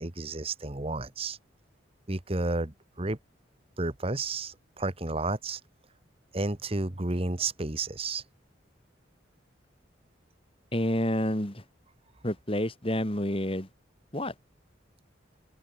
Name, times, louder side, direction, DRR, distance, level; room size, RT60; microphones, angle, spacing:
voice 1, 0.0-1.4 2.1-3.2 3.8-5.6 6.3-8.2, right 2 dB, 30° right, 1.4 m, -31 dB
voice 2, 10.7-11.6 12.2-13.7 14.1-14.3, left 1 dB, 30° left, 3.0 m, -29 dB
open air
head